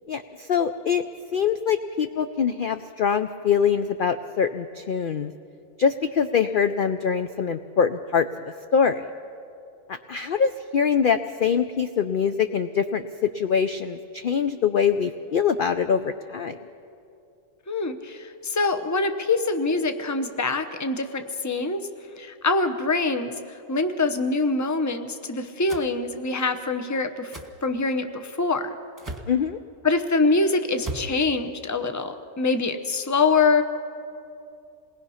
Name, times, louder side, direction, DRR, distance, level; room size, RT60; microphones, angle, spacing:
voice 1, 0.1-1.0 1.3-5.3 5.8-8.3 8.7-9.1 9.9-16.6 29.3-29.6, left 7 dB, 60° left, 9 dB, 0.5 m, -24 dB
voice 2, 17.7-21.9 22.2-27.3 27.6-28.8 29.8-33.6, left 3 dB, 15° left, 8 dB, 0.6 m, -24 dB
sound 1, 25.7-25.9 27.3-27.5 29.0-29.3 30.8-31.1, right 1 dB, 15° right, 1.3 m, -35 dB
27.5 x 20.0 x 5.7 m, 2.6 s
omnidirectional pair, 1.5 m